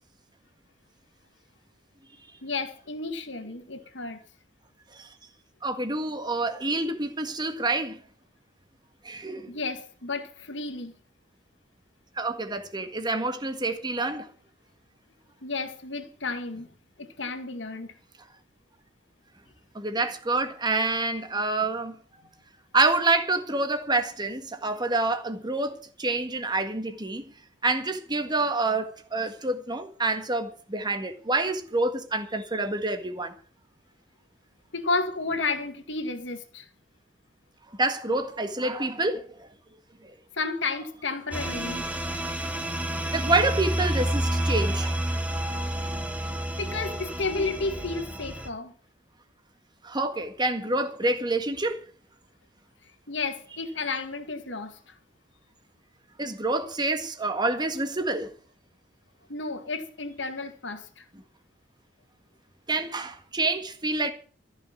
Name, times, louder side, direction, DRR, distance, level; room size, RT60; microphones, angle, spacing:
voice 1, 2.4-4.2 9.5-10.9 15.4-16.7 17.0-17.9 34.7-36.7 40.3-41.8 46.6-48.7 53.1-55.0 59.3-61.1, left 3 dB, 70° left, 2.2 m, -32 dB
voice 2, 5.6-8.0 9.0-9.5 12.2-14.3 19.7-22.0 22.7-27.3 27.6-33.3 37.8-39.5 40.0-40.1 42.8-45.0 49.8-51.8 56.2-58.3 62.7-64.1, right 2 dB, 25° right, 1.7 m, -27 dB
sound 1, 41.3-48.5, right 1 dB, 5° right, 1.5 m, -29 dB
14.5 x 6.5 x 9.3 m
head